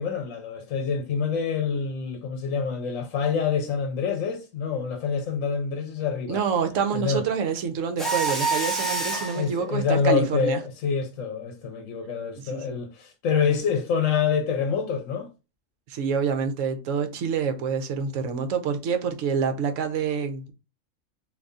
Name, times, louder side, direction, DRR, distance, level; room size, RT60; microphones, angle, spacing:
voice 1, 0.0-6.4 6.9-7.2 9.3-15.3, left 6 dB, 80° left, 1.0 m, -26 dB
voice 2, 6.3-10.6 12.4-12.8 15.9-20.5, right 6 dB, 75° right, 1.0 m, -27 dB
Mechanisms, 8.0-9.4, right 3 dB, ahead, 0.5 m, -26 dB
2.7 x 2.6 x 3.5 m
omnidirectional pair, 1.4 m